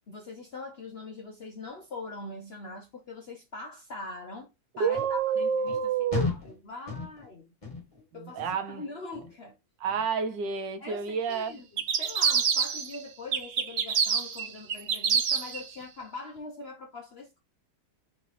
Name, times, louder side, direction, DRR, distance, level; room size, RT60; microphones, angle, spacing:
voice 1, 0.1-4.5 4.8-5.7 6.1-7.5 8.1-9.6 10.8-11.6 12.0-17.4, left 3 dB, 65° left, 0.6 m, -42 dB
voice 2, 4.8-6.3 8.1-8.8 9.8-11.6, right 6 dB, 90° right, 1.4 m, -29 dB
sound 1, 4.9-5.1 5.7-5.8 6.1-6.6 6.9-7.3 7.6-8.0 8.4-8.8 9.1-9.5 9.9-10.0, left 4 dB, 20° left, 1.4 m, -34 dB
sound 2, 11.8-13.0 13.3-15.6, right 7 dB, 60° right, 0.7 m, -26 dB
3.8 x 3.0 x 3.9 m
omnidirectional pair, 1.9 m